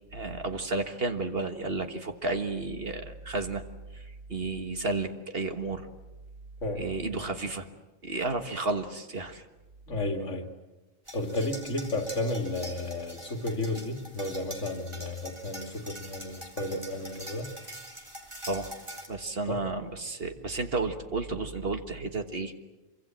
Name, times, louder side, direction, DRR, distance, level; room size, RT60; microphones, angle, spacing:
voice 1, 0.1-3.6 3.9-4.0 4.3-5.9 6.8-7.7 8.0-9.4 18.5-18.7 19.1-22.5, right 3 dB, 45° right, 1.7 m, -32 dB
voice 2, 6.6-6.9 9.9-10.5 11.1-17.5 19.5-19.7, left 2 dB, 60° left, 2.6 m, -32 dB
sound 1, 11.1-19.1, right 1 dB, 20° right, 3.5 m, -44 dB
26.0 x 24.0 x 7.6 m
omnidirectional pair, 1.4 m